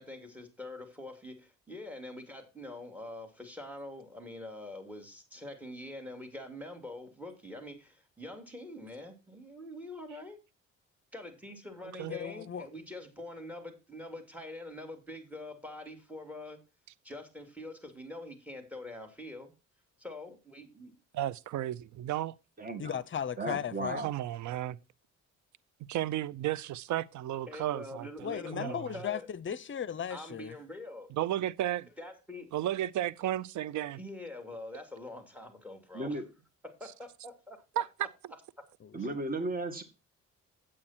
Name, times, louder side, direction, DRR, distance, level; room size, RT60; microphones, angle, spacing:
voice 1, 0.0-10.4 11.1-16.6 17.0-19.5 20.0-20.9 27.5-29.3 30.1-31.1 32.0-32.5 34.0-36.2 36.6-37.8 38.6-38.7, left 1 dB, 5° right, 2.9 m, -45 dB
voice 2, 12.1-12.7 22.8-24.0 28.2-30.5 38.8-39.0, left 8 dB, 40° left, 0.8 m, -36 dB
voice 3, 21.1-22.3 24.0-24.8 25.9-28.8 31.1-31.9 32.5-34.0 37.8-37.9, right 13 dB, 70° right, 0.6 m, -33 dB
voice 4, 22.6-23.0 23.4-24.1 35.9-36.2 38.9-39.8, right 2 dB, 30° right, 2.1 m, -35 dB
8.7 x 8.7 x 4.4 m
cardioid pair, 90°, 30 cm